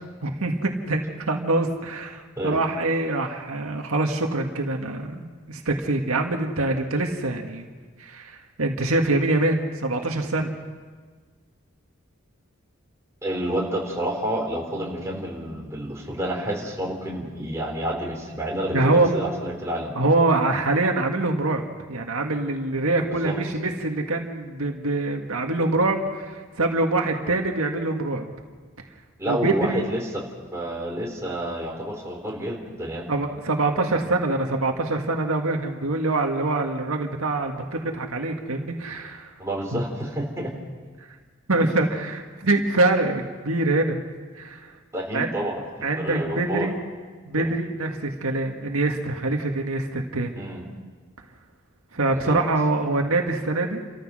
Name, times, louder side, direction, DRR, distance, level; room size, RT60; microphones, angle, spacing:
voice 1, 0.2-7.7 8.0-10.5 18.7-19.3 20.0-21.6 21.9-28.3 29.3-29.9 33.1-39.3 39.7-39.8 41.5-44.0 44.4-44.7 45.1-45.3 45.8-46.8 47.3-50.4 51.9-53.8, right 2 dB, 90° right, 3 dB, 1.8 m, -24 dB
voice 2, 13.2-19.9 23.1-23.4 29.2-30.2 30.5-33.0 39.4-40.5 44.9-45.6 45.9-46.7 47.4-47.5 50.3-50.6 52.1-52.4, right 1 dB, 15° right, -2 dB, 3.9 m, -29 dB
29.5 x 14.0 x 6.4 m, 1.5 s
head